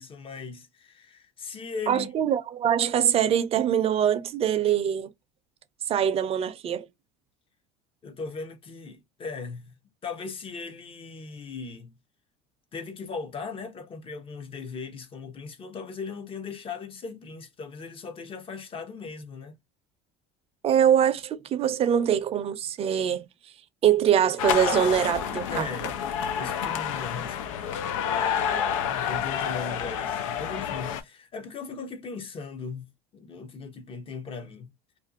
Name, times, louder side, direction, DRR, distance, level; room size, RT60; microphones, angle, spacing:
voice 1, 0.0-2.1 8.0-9.7 10.0-11.9 12.7-19.6 25.5-32.9 33.1-34.7, left 4 dB, 35° left, 0.7 m, -38 dB
voice 2, 1.9-5.1 5.9-6.9 20.6-23.3 23.8-25.7, right 9 dB, 35° right, 0.5 m, -23 dB
sound 1, 24.4-31.0, left 8 dB, 85° left, 0.5 m, -29 dB
2.5 x 2.3 x 2.4 m
supercardioid pair, 95°, 16 cm